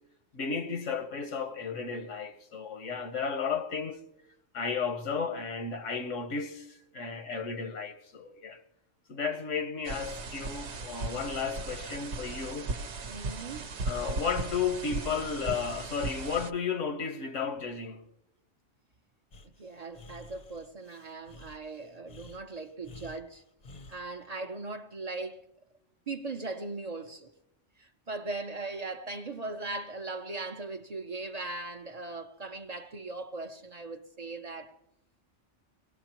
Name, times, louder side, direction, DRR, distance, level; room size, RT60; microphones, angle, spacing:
voice 1, 0.3-4.0 4.5-8.6 9.1-12.7 13.9-18.1, left 5 dB, 85° left, 1.4 m, -33 dB
sound 1, 9.8-16.5, right 3 dB, 70° right, 1.0 m, -37 dB
voice 2, 13.1-13.7 19.4-23.4 23.9-25.4 26.1-27.3 27.8-34.8, right 3 dB, 40° right, 0.6 m, -39 dB
Breathing, 19.3-24.0, left 2 dB, 40° left, 0.7 m, -51 dB
24.0 x 18.5 x 2.9 m
omnidirectional pair, 1.2 m